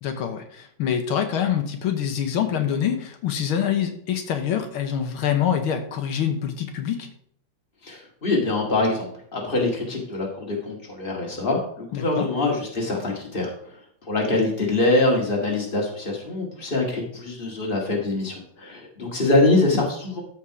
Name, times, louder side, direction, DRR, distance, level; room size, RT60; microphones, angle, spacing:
voice 1, 0.0-7.1 11.9-12.3, left 9 dB, 80° left, 6 dB, 1.8 m, -25 dB
voice 2, 7.8-13.5 14.1-20.2, left 2 dB, 25° left, -1 dB, 2.2 m, -24 dB
13.0 x 4.6 x 4.8 m, 0.63 s
omnidirectional pair, 2.3 m